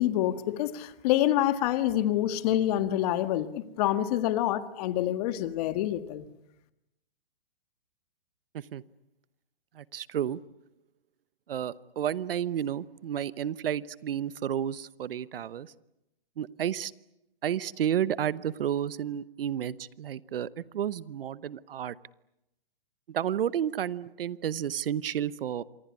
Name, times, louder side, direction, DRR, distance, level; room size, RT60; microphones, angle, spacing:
voice 1, 0.0-6.3, left 13 dB, 40° left, 1.8 m, -27 dB
voice 2, 9.7-10.4 11.5-15.7 16.4-16.9 17.4-21.9 23.1-25.6, right 10 dB, 70° right, 1.0 m, -31 dB
27.0 x 21.0 x 9.7 m
hypercardioid pair, 140°, 29 cm